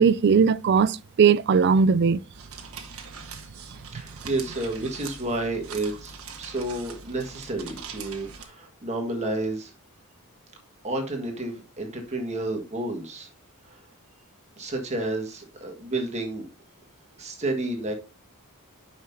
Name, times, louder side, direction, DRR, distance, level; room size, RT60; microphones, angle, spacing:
voice 1, 0.0-2.2, right 6 dB, 50° right, 0.3 m, -19 dB
sound 1, 2.3-8.5, right 6 dB, 70° right, 1.3 m, -42 dB
voice 2, 3.9-9.7 10.8-13.3 13.7-13.8 14.6-16.5 17.2-17.9, right 2 dB, 30° right, 1.6 m, -31 dB
9.4 x 5.8 x 2.7 m
head